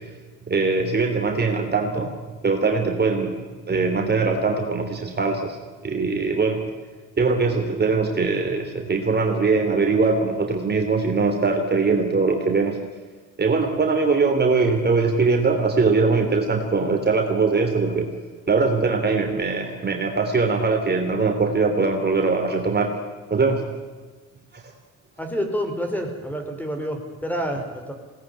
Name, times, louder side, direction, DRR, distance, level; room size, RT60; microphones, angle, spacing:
voice 1, 0.5-2.1 2.4-5.6 5.8-6.6 7.2-12.8 13.4-18.1 18.5-22.9 23.3-23.6 24.5-24.6, right 4 dB, 35° right, 3 dB, 3.2 m, -21 dB
voice 2, 25.2-27.9, equal, 5° left, 5 dB, 5.0 m, -28 dB
21.0 x 18.5 x 10.0 m, 1.4 s
cardioid pair, 90°, 30 cm